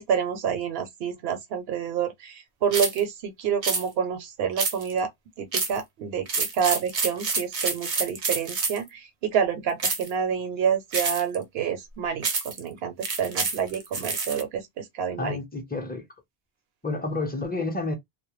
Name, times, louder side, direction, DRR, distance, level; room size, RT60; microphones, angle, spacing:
voice 1, 0.0-5.1 5.4-15.4, right 7 dB, 75° right, 0.8 m, -28 dB
sound 1, 2.7-3.0 3.6-3.8 4.6-5.0 5.5-5.8 6.3-8.9 9.8-10.1 10.9-11.4 12.2-12.6 13.0-14.4, right 4 dB, 45° right, 0.5 m, -28 dB
voice 2, 15.1-16.0 16.8-17.9, left 3 dB, 10° left, 0.5 m, -30 dB
2.1 x 2.1 x 3.0 m
omnidirectional pair, 1.0 m